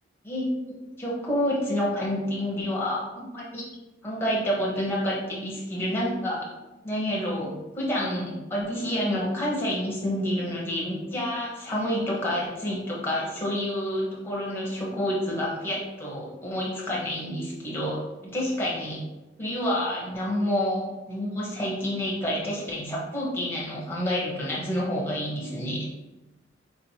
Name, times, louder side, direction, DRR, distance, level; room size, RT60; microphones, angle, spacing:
voice 1, 0.2-3.7 4.0-6.4 6.8-19.0 19.4-20.8 21.1-25.9, equal, 10° left, -5 dB, 1.0 m, -28 dB
4.7 x 3.1 x 2.8 m, 1.0 s
head